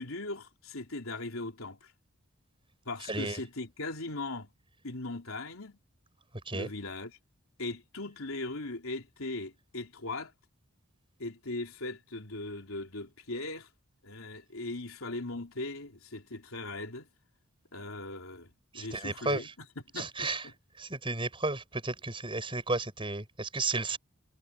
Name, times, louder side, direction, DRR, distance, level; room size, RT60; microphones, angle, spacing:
voice 1, 0.0-1.9 2.8-4.5 4.8-5.8 6.5-7.2 7.6-10.3 11.2-13.7 14.0-17.1 17.7-19.7 19.9-20.5, left 2 dB, 75° left, 3.4 m, -39 dB
voice 2, 3.1-3.4 6.5-6.7 18.7-19.5 20.0-20.5 20.8-24.0, right 3 dB, 25° right, 7.1 m, -33 dB
head